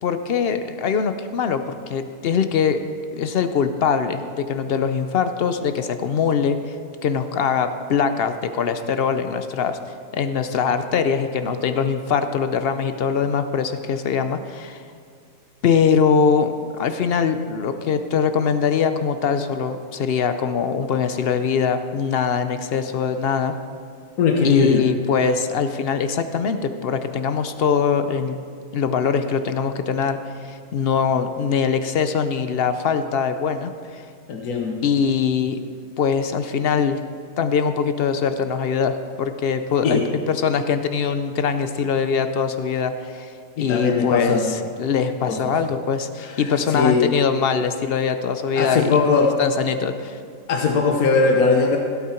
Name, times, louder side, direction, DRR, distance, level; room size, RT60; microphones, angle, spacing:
voice 1, 0.0-2.8 3.1-6.8 7.0-9.8 10.1-14.8 15.6-23.5 24.4-28.4 28.7-34.0 34.8-35.6 36.0-37.0 37.4-48.9 49.4-50.2, left 6 dB, 55° left, 9 dB, 0.7 m, -22 dB
voice 2, 24.2-24.8 34.3-34.8 39.8-40.0 43.6-44.5 45.3-45.4 46.2-47.1 48.6-49.3 50.5-51.8, left 4 dB, 75° left, 1 dB, 1.5 m, -20 dB
16.0 x 8.3 x 4.4 m, 2.3 s
omnidirectional pair, 1.6 m